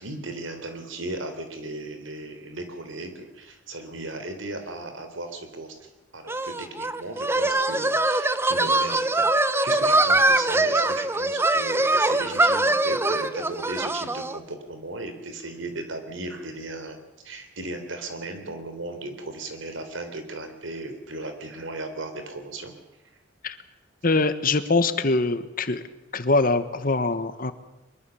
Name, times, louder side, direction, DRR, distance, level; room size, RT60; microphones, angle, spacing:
voice 1, 0.0-17.0 17.2-22.7, right 2 dB, 85° right, 7 dB, 3.8 m, -36 dB
sound 1, 6.3-14.4, right 2 dB, 15° right, 0.8 m, -23 dB
voice 2, 24.0-25.8 26.1-27.5, left 3 dB, 45° left, 11 dB, 1.5 m, -23 dB
23.5 x 22.5 x 7.2 m, 0.98 s
head